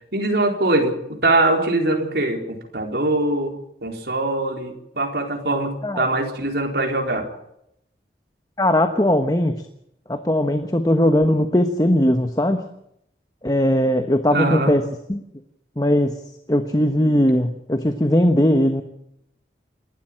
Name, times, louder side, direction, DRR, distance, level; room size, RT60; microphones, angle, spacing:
voice 1, 0.1-3.5 3.8-7.3 14.3-14.7, right 2 dB, 65° right, 3 dB, 4.2 m, -22 dB
voice 2, 8.6-9.5 10.1-12.6 13.4-14.8 15.1-15.2 15.8-16.2 16.5-18.8, left 1 dB, 20° left, 7 dB, 1.2 m, -19 dB
28.0 x 12.5 x 7.6 m, 0.77 s
head